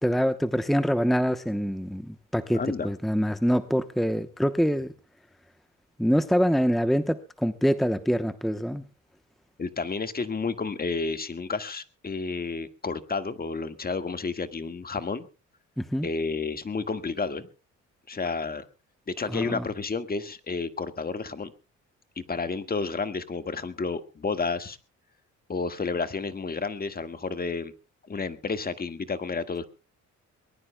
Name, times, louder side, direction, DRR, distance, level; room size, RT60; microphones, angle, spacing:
voice 1, 0.0-4.9 6.0-8.8 15.8-16.1 19.3-19.6, equal, ahead, 9 dB, 0.9 m, -25 dB
voice 2, 2.5-2.9 9.6-15.3 16.0-17.5 18.1-18.6 19.1-21.5 22.1-24.8 25.5-27.7 28.1-29.6, left 4 dB, 30° left, 9 dB, 1.7 m, -31 dB
23.0 x 20.0 x 2.2 m, 0.35 s
cardioid pair, 90°, 30 cm